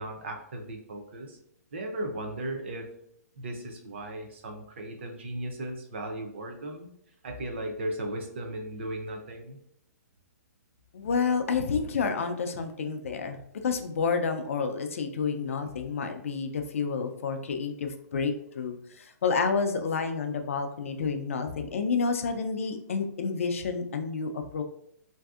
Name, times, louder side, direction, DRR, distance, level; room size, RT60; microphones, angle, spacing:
voice 1, 0.0-1.4 1.7-2.9 3.4-6.9 7.2-9.6, right 1 dB, 40° right, 3 dB, 0.5 m, -36 dB
voice 2, 10.9-24.6, left 5 dB, 50° left, 6 dB, 0.4 m, -29 dB
3.3 x 2.6 x 2.3 m, 0.71 s
hypercardioid pair, 175°, 9 cm